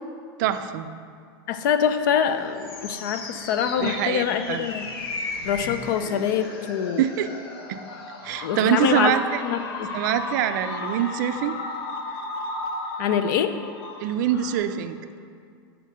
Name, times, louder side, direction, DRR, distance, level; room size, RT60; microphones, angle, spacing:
voice 1, 0.4-0.9 3.8-4.7 7.0-7.3 7.7-7.8 8.2-9.4 9.9-11.6 14.0-15.0, right 10 dB, 50° right, 9 dB, 0.4 m, -24 dB
voice 2, 1.5-4.9 5.4-7.0 8.4-9.1 9.4-9.9 13.0-13.5, left 8 dB, 55° left, 10 dB, 0.5 m, -24 dB
sound 1, 2.2-14.6, left 2 dB, 85° left, 1.0 m, -35 dB
6.6 x 4.4 x 6.5 m, 2.2 s
supercardioid pair, 165°, 12 cm